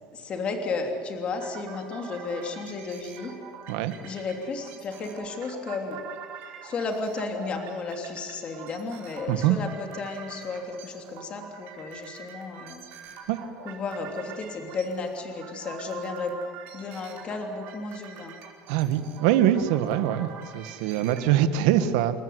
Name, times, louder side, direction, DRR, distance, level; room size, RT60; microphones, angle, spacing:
voice 1, 0.1-3.3 4.0-6.0 6.6-12.8 13.6-16.4 16.7-18.3, left 3 dB, 30° left, 3.1 m, -33 dB
sound 1, 1.3-21.2, right 7 dB, 50° right, 4.7 m, -45 dB
voice 2, 9.3-9.6 13.3-13.4 18.7-22.2, right 11 dB, 75° right, 1.7 m, -23 dB
28.5 x 14.5 x 9.5 m
cardioid pair, 160°, 4 cm